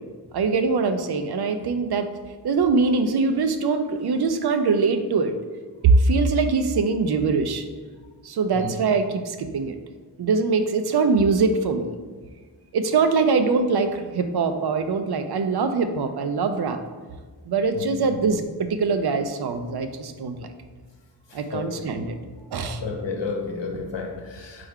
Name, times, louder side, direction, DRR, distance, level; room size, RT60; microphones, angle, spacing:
voice 1, 0.3-2.1 2.4-5.4 5.8-7.7 8.2-9.8 10.2-11.9 12.7-16.8 17.5-20.5 21.3-22.1 22.5-22.8, right 4 dB, 65° right, 8 dB, 0.5 m, -22 dB
voice 2, 21.3-21.9 22.8-24.7, left 4 dB, 85° left, 1 dB, 0.9 m, -32 dB
4.4 x 3.4 x 3.6 m, 1.4 s
wide cardioid pair, 75°, 43 cm